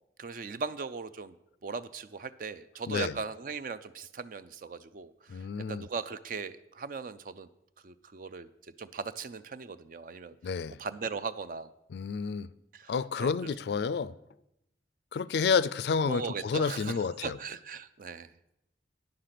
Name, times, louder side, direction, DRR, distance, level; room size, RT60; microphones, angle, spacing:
voice 1, 0.2-1.4 1.6-7.5 7.8-8.5 8.8-10.3 10.8-11.7 12.7-13.3 16.1-18.3, right 5 dB, 45° right, 0.4 m, -39 dB
voice 2, 5.3-5.9 10.4-10.8 11.9-12.5 12.9-14.2 15.1-17.4, left 5 dB, 65° left, 0.3 m, -30 dB
9.6 x 6.6 x 5.8 m
head